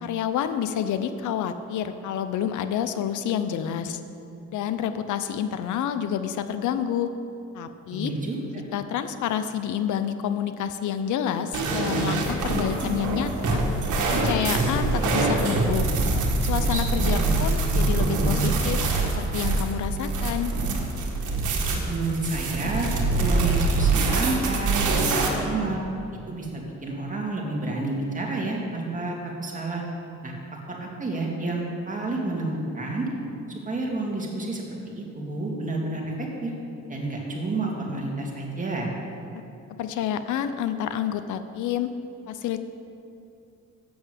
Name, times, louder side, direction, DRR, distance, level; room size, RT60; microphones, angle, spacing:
voice 1, 0.0-4.0 4.5-7.1 7.5-8.1 8.7-13.6 14.1-15.9 16.4-18.8 19.2-20.5 39.8-41.9 42.3-42.6, left 9 dB, 75° left, 10 dB, 0.6 m, -28 dB
voice 2, 7.9-8.4 16.7-17.4 21.9-22.9 23.2-25.8 26.3-29.8 30.2-30.3 30.7-33.1 33.5-34.6 35.0-36.5 36.9-38.9, right 2 dB, 25° right, -2 dB, 2.2 m, -30 dB
sound 1, 11.5-25.3, right 3 dB, 75° right, 1.6 m, -24 dB
8.0 x 6.6 x 8.1 m, 2.7 s
cardioid pair, 90°, 30 cm